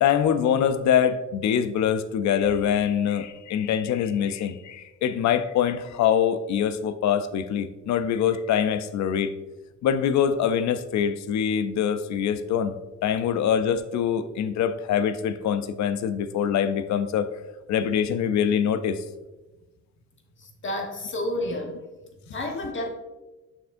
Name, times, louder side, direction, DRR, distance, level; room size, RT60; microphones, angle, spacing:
voice 1, 0.0-9.3 9.8-12.7 13.0-17.3 17.7-19.0, left 8 dB, 70° left, 0.6 m, -24 dB
voice 2, 20.4-21.8 22.3-22.9, left 1 dB, 40° left, 1.3 m, -30 dB
6.9 x 6.0 x 2.6 m
cardioid pair, 90°, 30 cm